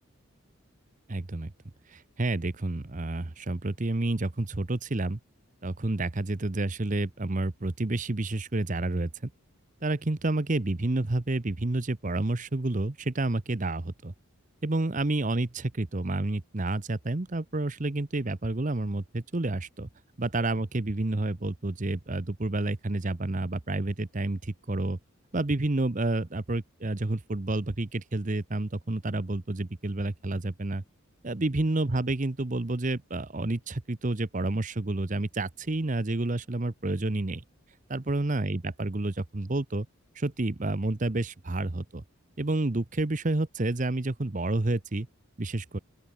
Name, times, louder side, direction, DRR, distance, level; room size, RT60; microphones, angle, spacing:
voice 1, 1.1-1.5 1.9-5.2 5.6-9.3 9.8-14.1 14.6-19.9 20.2-25.0 25.3-30.8 31.2-37.4 37.9-39.9 40.1-42.0 42.4-45.1 45.4-45.8, right 2 dB, 35° right, 0.8 m, -29 dB
open air
head